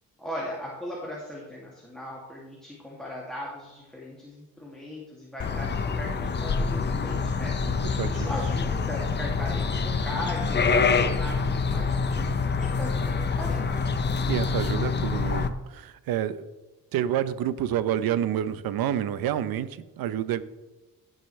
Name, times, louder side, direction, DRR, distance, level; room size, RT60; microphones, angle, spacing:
voice 1, 0.2-13.8, left 1 dB, ahead, -5 dB, 2.4 m, -38 dB
sound 1, 5.4-15.5, left 4 dB, 30° left, 0.7 m, -26 dB
voice 2, 7.9-8.3 14.2-16.5 16.9-20.4, right 10 dB, 80° right, 14 dB, 0.8 m, -28 dB
16.5 x 7.6 x 3.2 m, 1.1 s
cardioid pair, 135°, 35 cm